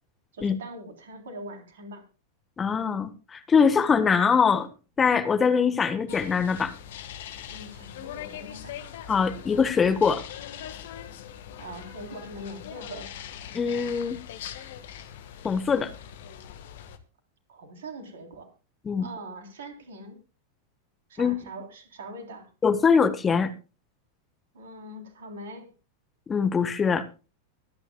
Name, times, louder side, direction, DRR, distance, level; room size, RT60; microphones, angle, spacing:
voice 1, 0.3-2.0 7.5-8.8 11.6-13.1 17.5-18.5 19.0-20.2 21.1-22.5 24.5-25.7, right 1 dB, 60° right, 4 dB, 3.6 m, -42 dB
voice 2, 2.6-4.7 5.0-6.7 9.1-10.2 13.5-14.2 15.4-15.9 18.8-19.1 21.2-21.3 22.6-23.5 26.3-27.0, left 6 dB, 20° left, 10 dB, 1.3 m, -23 dB
sound 1, 6.1-17.0, left 10 dB, 55° left, 1.5 m, -41 dB
24.5 x 9.8 x 2.3 m, 0.32 s
figure-of-eight pair, 90°, 0 cm